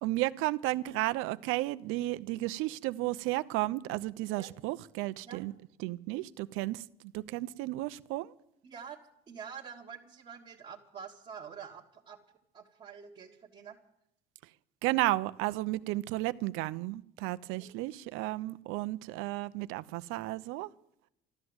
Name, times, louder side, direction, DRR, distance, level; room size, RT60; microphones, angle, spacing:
voice 1, 0.0-5.5 5.8-8.3 14.8-20.7, right 18 dB, 85° right, 14 dB, 0.8 m, -33 dB
voice 2, 8.6-9.0 9.3-12.2 12.5-13.8 17.6-17.7, right 7 dB, 30° right, -4 dB, 1.6 m, -47 dB
13.0 x 13.0 x 8.0 m, 0.76 s
cardioid pair, 155°, 21 cm